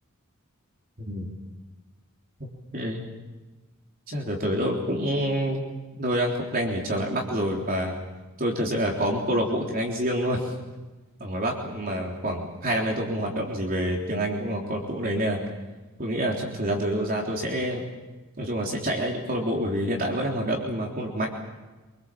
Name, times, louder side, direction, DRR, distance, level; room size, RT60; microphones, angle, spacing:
voice 1, 1.0-1.3 2.7-3.0 4.1-5.6 6.0-8.0 8.4-10.5 11.2-15.4 16.0-17.8 18.4-21.3, equal, 45° right, 0 dB, 3.6 m, -27 dB
26.0 x 24.0 x 7.5 m, 1.2 s
head